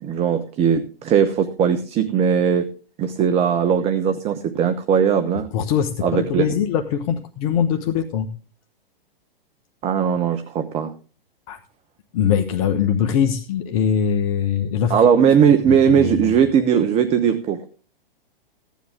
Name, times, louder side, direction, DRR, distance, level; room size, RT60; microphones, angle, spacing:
voice 1, 0.0-2.7 3.0-5.5 6.0-6.5 9.8-10.9 14.9-17.7, right 7 dB, 20° right, 9 dB, 1.0 m, -19 dB
voice 2, 5.5-8.3 11.5-11.6 12.1-15.0 15.4-16.3, left 8 dB, 40° left, 7 dB, 1.2 m, -22 dB
16.0 x 10.5 x 3.7 m, 0.37 s
figure-of-eight pair, 115°, 29 cm